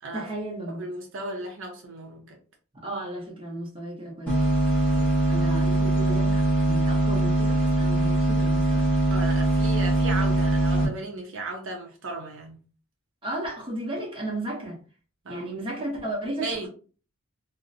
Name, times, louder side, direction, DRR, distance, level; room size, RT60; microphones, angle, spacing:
voice 1, 0.1-0.9 2.7-4.5 5.3-8.9 13.2-14.8 15.3-16.7, right 1 dB, 25° right, 0.7 m, -34 dB
voice 2, 0.7-2.4 4.9-5.1 9.1-12.6 15.2-15.5 16.4-16.7, right 2 dB, 60° right, 0.6 m, -35 dB
sound 1, 4.3-10.8, right 1 dB, 5° left, 0.8 m, -22 dB
2.5 x 2.0 x 2.5 m
head